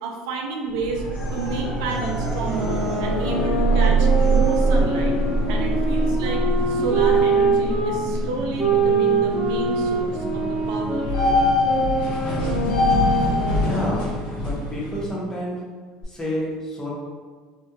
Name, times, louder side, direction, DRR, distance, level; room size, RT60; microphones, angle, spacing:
voice 1, 0.0-1.0 1.3-5.1 5.5-11.7, right 3 dB, 85° right, 1 dB, 0.4 m, -31 dB
sound 1, 0.7-15.1, left 1 dB, 70° left, 1.4 m, -27 dB
sound 2, 0.8-13.7 16.0-16.1, right 3 dB, 45° left, 1.0 m, -25 dB
sound 3, 2.4-7.9 8.6-14.1, right 3 dB, 35° right, 1.0 m, -24 dB
voice 2, 13.6-14.1 14.4-15.6 16.1-16.9, left 1 dB, 20° left, -5 dB, 0.9 m, -29 dB
2.8 x 2.5 x 2.3 m, 1.5 s
supercardioid pair, 95°, 3 cm